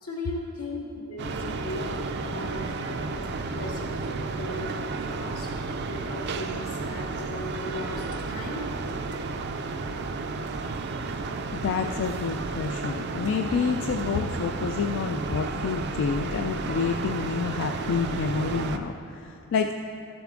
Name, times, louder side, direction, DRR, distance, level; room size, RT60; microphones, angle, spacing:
voice 1, 0.0-3.2 3.5-5.5 5.9-8.7, left 1 dB, 85° left, -4 dB, 1.9 m, -37 dB
sound 1, 1.2-18.8, right 3 dB, 50° right, 0.4 m, -32 dB
sound 2, 7.4-15.5, right 2 dB, 75° right, 0.8 m, -51 dB
voice 2, 11.5-19.7, left 5 dB, 55° left, 5 dB, 0.3 m, -28 dB
13.0 x 6.9 x 3.7 m, 2.8 s
head